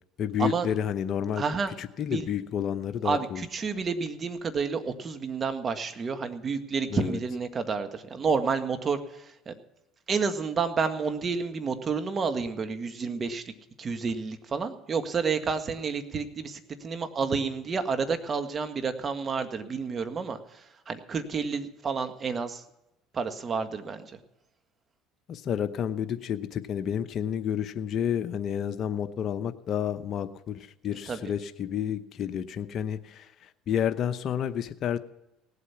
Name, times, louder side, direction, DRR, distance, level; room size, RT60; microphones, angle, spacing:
voice 1, 0.2-1.4 1.8-3.4 6.9-7.2 25.3-35.0, left 9 dB, 50° left, 9 dB, 0.8 m, -30 dB
voice 2, 1.4-1.7 2.1-2.3 3.0-9.5 10.1-13.4 13.8-22.6 23.1-24.1 31.1-31.2, right 5 dB, 35° right, 8 dB, 1.6 m, -30 dB
18.0 x 8.2 x 5.8 m, 0.89 s
supercardioid pair, 80°, 0 cm